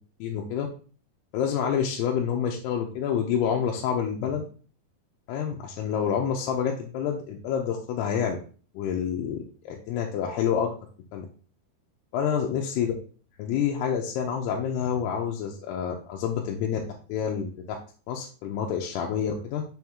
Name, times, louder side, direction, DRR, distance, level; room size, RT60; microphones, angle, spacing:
voice 1, 0.2-0.7 1.3-4.4 5.3-8.4 8.7-10.7 11.1-11.3 12.1-12.9 13.4-16.8 17.1-17.6 18.1-19.6, left 8 dB, 85° left, 0 dB, 2.7 m, -28 dB
6.2 x 4.5 x 3.5 m, 0.39 s
omnidirectional pair, 4.8 m